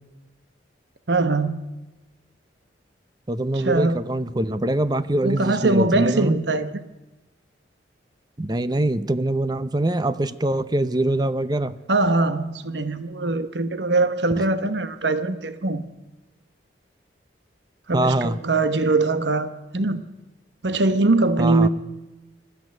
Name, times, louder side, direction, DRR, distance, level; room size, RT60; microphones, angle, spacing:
voice 1, 1.1-1.6 3.5-4.0 5.2-6.7 11.9-15.9 17.9-20.0 20.6-21.7, right 2 dB, 70° right, 1.0 m, -22 dB
voice 2, 3.3-6.4 8.4-11.7 17.9-18.4 21.4-21.7, right 1 dB, 20° right, 0.7 m, -23 dB
23.5 x 13.5 x 9.4 m
head